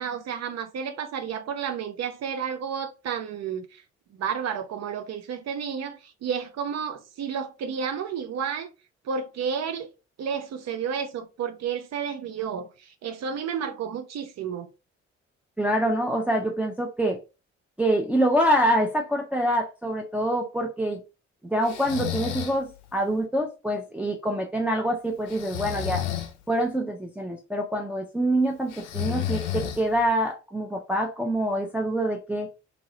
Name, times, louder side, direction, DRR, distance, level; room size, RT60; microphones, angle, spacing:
voice 1, 0.0-3.8 4.1-8.7 9.0-9.9 10.2-14.7, right 7 dB, 45° right, 0.6 m, -31 dB
voice 2, 15.6-17.2 17.8-21.0 21.5-26.0 26.5-32.5, right 1 dB, 5° right, 0.5 m, -25 dB
Breathing, 21.7-22.6 25.3-26.3 28.7-30.1, left 12 dB, 75° left, 0.6 m, -31 dB
2.9 x 2.8 x 2.6 m
figure-of-eight pair, 40°, 36 cm